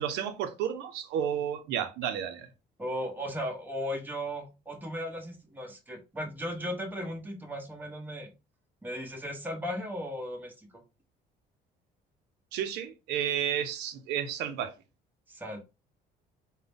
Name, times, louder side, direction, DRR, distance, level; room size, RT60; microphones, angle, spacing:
voice 1, 0.0-2.5 12.5-14.7, right 9 dB, 85° right, 0.5 m, -32 dB
voice 2, 2.8-8.3 8.8-10.7 15.3-15.6, equal, 10° right, 1.0 m, -36 dB
3.8 x 2.1 x 3.4 m
cardioid pair, 110°, 17 cm